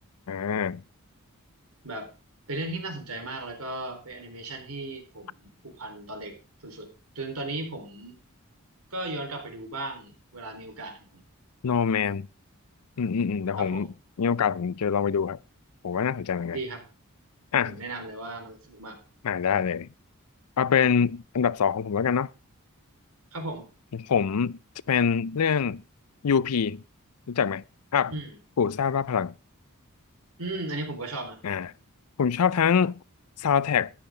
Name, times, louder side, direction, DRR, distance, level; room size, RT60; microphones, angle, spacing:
voice 1, 0.3-0.8 11.6-12.3 13.0-13.9 14.2-15.4 15.8-16.6 17.5-17.8 19.2-19.9 20.6-22.3 23.9-24.6 24.9-25.8 26.2-26.8 27.3-27.6 27.9-28.1 28.6-29.3 31.4-31.7 32.2-33.0 33.4-33.9, left 7 dB, 85° left, 0.5 m, -25 dB
voice 2, 2.5-6.4 6.6-6.9 7.1-8.2 8.9-11.2 13.6-13.9 16.5-16.8 17.6-19.0 23.3-23.7 28.1-28.4 30.4-31.4, right 2 dB, 75° right, 4.4 m, -36 dB
13.5 x 10.5 x 3.9 m
head